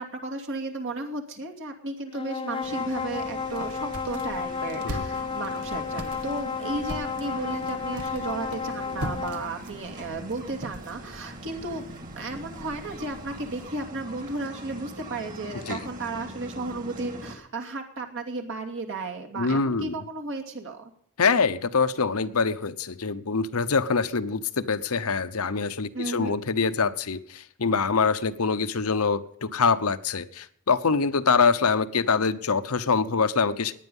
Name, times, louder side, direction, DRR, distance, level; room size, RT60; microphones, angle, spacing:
voice 1, 0.0-11.8 12.2-20.9 25.9-26.3, right 2 dB, 60° right, 3 dB, 2.6 m, -34 dB
sound 1, 2.1-9.5, left 5 dB, 25° left, 0.5 m, -32 dB
sound 2, 2.6-17.3, right 1 dB, 40° right, 2.8 m, -42 dB
sound 3, 3.2-13.7, right 1 dB, 85° right, 1.8 m, -42 dB
voice 2, 4.8-5.3 15.7-15.8 19.4-20.0 21.2-33.7, left 5 dB, 75° left, 13 dB, 0.9 m, -25 dB
18.0 x 10.0 x 5.5 m, 0.66 s
head